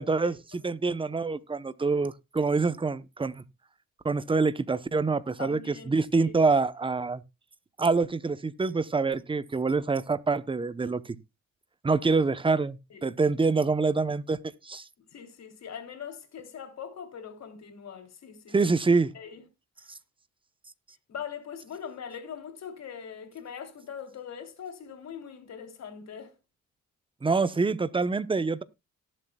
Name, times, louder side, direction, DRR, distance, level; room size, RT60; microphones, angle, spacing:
voice 1, 0.0-3.4 4.0-7.2 7.8-11.0 11.8-14.4 14.6-14.8 18.5-19.1 27.2-28.6, right 4 dB, 15° right, 0.8 m, -26 dB
voice 2, 5.4-5.9 6.2-6.3 12.9-13.0 15.1-18.5 19.1-19.4 21.1-26.3, left 7 dB, 60° left, 3.2 m, -41 dB
18.0 x 7.8 x 2.3 m
cardioid pair, 90°, 30 cm